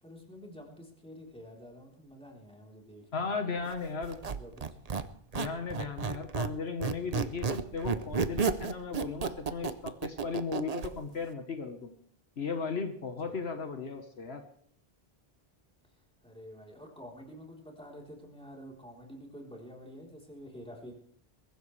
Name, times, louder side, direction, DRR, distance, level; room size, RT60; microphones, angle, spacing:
voice 1, 0.0-4.8 13.3-13.4 16.2-20.9, equal, 5° left, -2 dB, 3.8 m, -49 dB
voice 2, 3.1-4.2 5.3-11.9 12.4-14.4, left 4 dB, 75° left, 6 dB, 1.6 m, -36 dB
Squeak, 4.0-6.6 6.8-10.9, right 5 dB, 40° right, 0.8 m, -32 dB
22.0 x 15.5 x 3.3 m, 0.65 s
omnidirectional pair, 1.1 m